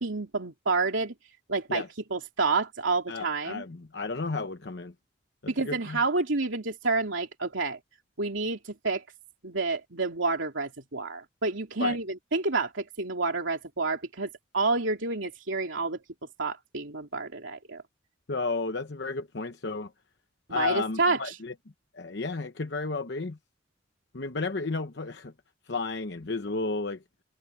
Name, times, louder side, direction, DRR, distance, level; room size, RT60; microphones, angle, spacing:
voice 1, 0.0-1.1 1.5-1.8 2.1-3.6 5.5-7.8 8.2-9.0 9.4-12.1 12.3-16.0 16.4-17.8 20.5-21.4, right 3 dB, 80° right, 2.8 m, -29 dB
voice 2, 3.1-4.9 5.4-6.0 11.8-12.0 18.3-19.9 20.5-21.5 21.9-23.4 24.1-25.3 25.7-27.0, left 3 dB, 60° left, 0.9 m, -32 dB
head